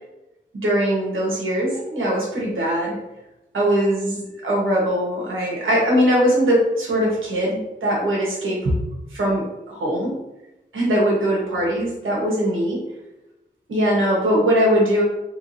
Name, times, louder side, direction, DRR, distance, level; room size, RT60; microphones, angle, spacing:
voice 1, 0.6-3.0 3.5-8.7 9.1-10.2 10.7-12.8 13.7-15.0, equal, 80° right, -3 dB, 1.3 m, -21 dB
3.4 x 3.3 x 2.7 m, 0.96 s
cardioid pair, 45°, 20 cm